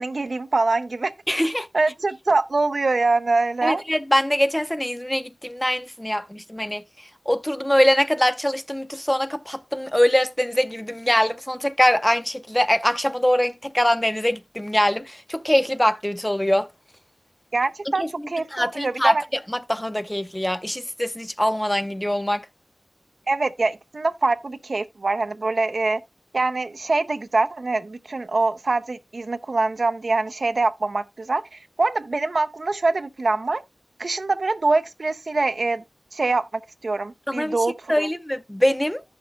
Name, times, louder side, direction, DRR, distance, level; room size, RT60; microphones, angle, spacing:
voice 1, 0.0-1.1 1.7-3.8 17.5-19.2 23.3-26.0 26.3-33.6 34.0-35.8 36.1-36.5 36.8-38.1, right 3 dB, 75° right, 0.5 m, -24 dB
voice 2, 1.3-1.7 3.6-6.8 7.3-16.7 18.0-18.1 18.5-19.2 19.5-22.4 37.3-37.5 37.9-39.0, equal, 15° left, 0.6 m, -23 dB
15.0 x 5.8 x 2.3 m
wide cardioid pair, 60°, 0 cm